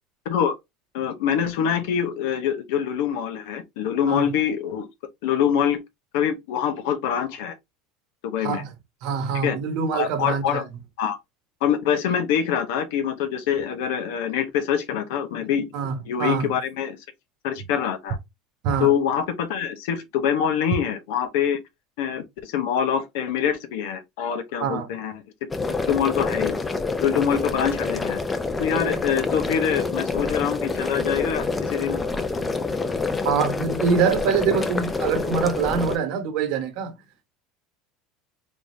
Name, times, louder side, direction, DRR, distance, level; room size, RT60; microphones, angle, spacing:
voice 1, 0.2-0.6 0.9-4.9 5.2-5.8 6.1-7.5 8.2-8.6 9.4-9.6 9.9-10.6 11.0-11.2 11.6-15.7 16.1-17.0 17.4-18.2 18.8-21.6 22.0-25.2 25.9-26.6 27.0-28.2 28.6-32.0, left 8 dB, 80° left, 0.9 m, -24 dB
voice 2, 8.4-8.7 9.0-10.6 15.7-16.5 18.6-18.9 24.6-24.9 33.2-36.9, right 6 dB, 65° right, 1.0 m, -24 dB
sound 1, 25.5-36.0, left 3 dB, 15° left, 0.6 m, -27 dB
3.6 x 3.5 x 2.6 m
supercardioid pair, 115°, 0 cm